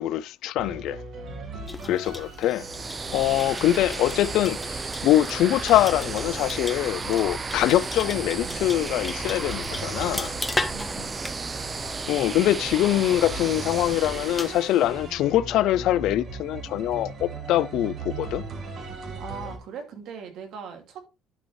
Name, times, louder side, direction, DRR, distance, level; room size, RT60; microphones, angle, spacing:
voice 1, 0.0-1.0 1.9-2.7 3.1-10.3 12.1-18.4, left 13 dB, 70° left, 0.3 m, -23 dB
sound 1, 0.6-19.6, right 3 dB, 45° right, 1.8 m, -40 dB
voice 2, 1.2-1.9 3.2-3.4 10.7-11.2 19.2-21.1, right 6 dB, 65° right, 2.3 m, -41 dB
sound 2, 1.7-14.7, left 2 dB, 10° left, 0.8 m, -38 dB
sound 3, 2.4-15.1, right 4 dB, 25° right, 0.6 m, -34 dB
11.5 x 5.2 x 3.2 m
cardioid pair, 125°, 0 cm